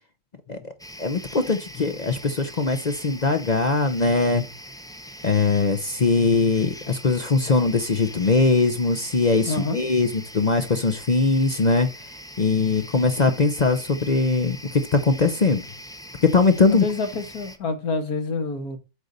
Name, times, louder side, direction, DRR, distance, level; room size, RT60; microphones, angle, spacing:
sound 1, 0.8-17.6, equal, 5° left, 0.3 m, -42 dB
voice 1, 1.0-4.5 5.2-10.1 10.3-11.9 12.4-15.6 16.2-16.8, left 4 dB, 40° left, 0.6 m, -21 dB
voice 2, 9.5-9.8 16.7-18.8, left 3 dB, 75° left, 1.9 m, -27 dB
8.0 x 4.0 x 6.5 m
omnidirectional pair, 1.6 m